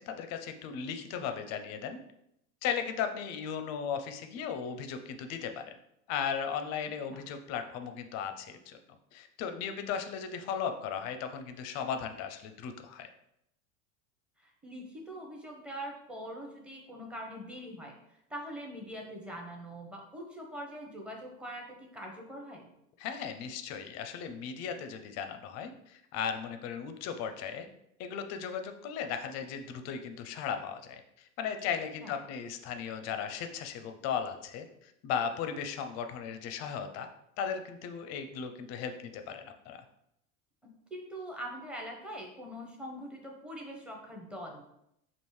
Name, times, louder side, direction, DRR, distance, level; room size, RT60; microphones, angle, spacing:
voice 1, 0.0-2.0 2.6-5.6 6.1-8.8 9.1-13.1 23.0-27.7 28.0-37.1 37.4-39.8, left 7 dB, 40° left, 7 dB, 0.5 m, -36 dB
voice 2, 14.4-17.9 18.3-22.7 32.0-32.2 40.6-44.6, equal, 5° right, -1 dB, 0.7 m, -43 dB
5.2 x 2.5 x 3.1 m, 0.78 s
hypercardioid pair, 110°, 42 cm